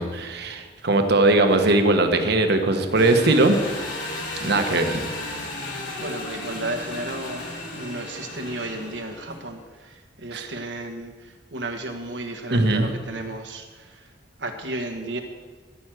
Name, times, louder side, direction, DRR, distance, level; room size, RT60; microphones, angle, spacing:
voice 1, 0.0-3.6 4.4-5.0 10.3-10.5 12.5-12.9, right 2 dB, 65° right, 6 dB, 1.3 m, -20 dB
Engine, 3.0-9.5, left 1 dB, 80° left, 4.8 m, -34 dB
voice 2, 6.0-14.1 14.4-15.2, right 1 dB, 85° right, 5 dB, 1.5 m, -33 dB
14.5 x 6.3 x 7.8 m, 1.5 s
head